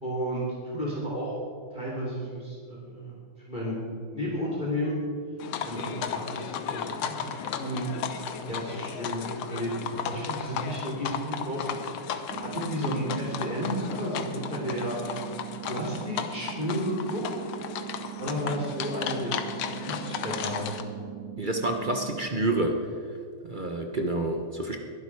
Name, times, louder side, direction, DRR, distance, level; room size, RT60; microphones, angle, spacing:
voice 1, 0.0-1.3 1.7-3.2 3.5-3.8 4.1-4.9 5.6-7.9 8.5-12.1 12.4-15.3 15.6-17.2 17.8-17.9 18.2-20.7, equal, 20° left, -4 dB, 3.1 m, -32 dB
Horses Pavement Then Cobblestone, 5.4-20.8, left 8 dB, 80° left, 1.8 m, -35 dB
sound 1, 12.3-22.3, right 14 dB, 70° right, 0.9 m, -40 dB
voice 2, 21.4-22.7 23.4-24.8, right 2 dB, 35° right, 3 dB, 0.9 m, -28 dB
21.5 x 11.5 x 4.7 m, 2.2 s
omnidirectional pair, 2.3 m